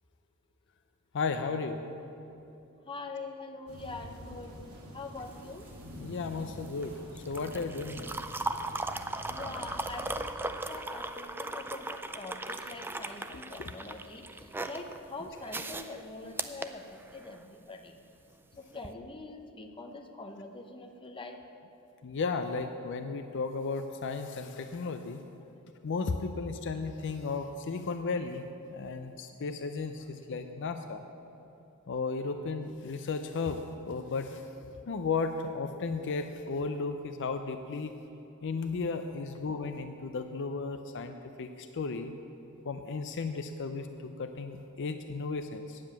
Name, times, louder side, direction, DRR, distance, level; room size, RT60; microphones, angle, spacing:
voice 1, 1.1-1.8 6.0-8.1 13.6-13.7 22.0-25.2 25.8-31.0 31.9-34.5 34.9-37.9 38.4-42.1 42.6-45.8, left 4 dB, 55° left, 7 dB, 0.5 m, -34 dB
voice 2, 2.9-4.5 4.9-5.7 9.3-18.0 18.6-21.4, left 3 dB, 25° left, 4 dB, 0.8 m, -44 dB
sound 1, 3.7-10.2, equal, 80° right, 2.1 m, -47 dB
sound 2, 5.2-17.5 18.7-18.9, right 2 dB, 10° right, 0.3 m, -38 dB
9.4 x 7.7 x 8.8 m, 2.9 s
head